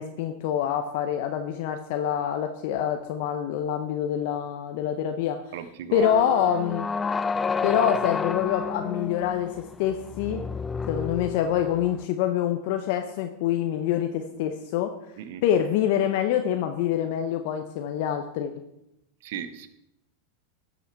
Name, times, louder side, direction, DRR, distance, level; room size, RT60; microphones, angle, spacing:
voice 1, 0.0-5.4 5.9-6.9 7.6-10.4 10.9-14.9 15.4-18.6, left 9 dB, 65° left, 6 dB, 0.8 m, -26 dB
voice 2, 5.5-6.1 15.2-15.4 19.2-19.7, right 9 dB, 65° right, 12 dB, 0.9 m, -36 dB
sound 1, 6.0-12.0, left 5 dB, 20° left, 0.4 m, -30 dB
11.5 x 6.1 x 4.6 m, 0.83 s
hypercardioid pair, 100°, 0 cm